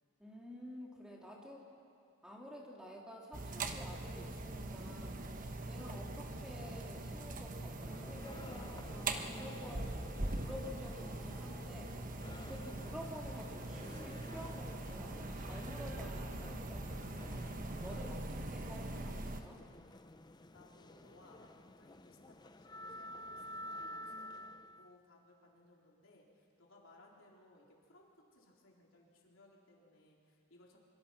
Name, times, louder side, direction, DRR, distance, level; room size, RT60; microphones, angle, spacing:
voice 1, 0.2-1.7 2.2-11.9 12.4-19.6, left 1 dB, 5° right, -2 dB, 2.7 m, -50 dB
sound 1, 3.3-19.4, right 2 dB, 40° right, 1.1 m, -42 dB
sound 2, 7.8-24.9, left 1 dB, 20° left, 0.6 m, -52 dB
voice 2, 20.5-30.8, left 2 dB, 70° left, -2 dB, 4.0 m, -63 dB
25.0 x 24.5 x 6.0 m, 2.4 s
head